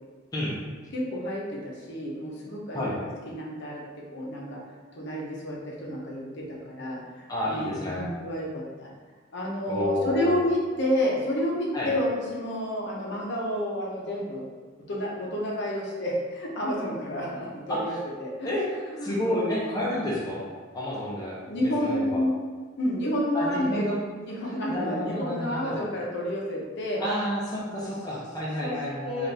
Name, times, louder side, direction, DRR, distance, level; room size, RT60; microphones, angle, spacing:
voice 1, 0.9-4.6 4.9-8.9 9.3-14.5 14.9-17.9 18.2-18.5 18.9-19.7 21.4-22.4 22.8-23.9 24.2-27.0 28.6-28.7 29.0-29.3, equal, 60° left, -3 dB, 0.8 m, -30 dB
voice 2, 7.3-8.1 9.7-10.4 11.7-11.9 17.7-18.0 18.4-18.7 19.0-20.5 20.7-22.2 23.3-24.0 24.7-25.8 27.0-29.3, left 1 dB, 20° left, -6 dB, 0.7 m, -30 dB
4.1 x 2.5 x 3.3 m, 1.5 s
head